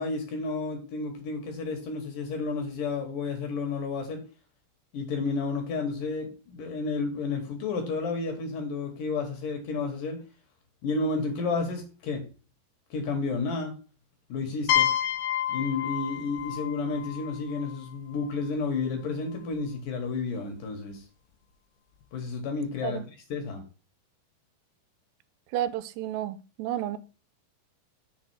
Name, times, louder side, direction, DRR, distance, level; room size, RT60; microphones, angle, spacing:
voice 1, 0.0-4.2 4.9-10.2 10.8-12.2 12.9-13.7 14.3-14.9 15.5-21.0 22.1-23.0 23.3-23.6, left 4 dB, 65° left, 2.6 m, -31 dB
sound 1, 14.7-18.3, left 11 dB, 90° left, 3.0 m, -29 dB
voice 2, 25.5-27.0, right 12 dB, 85° right, 2.6 m, -31 dB
7.4 x 3.7 x 6.0 m
omnidirectional pair, 4.7 m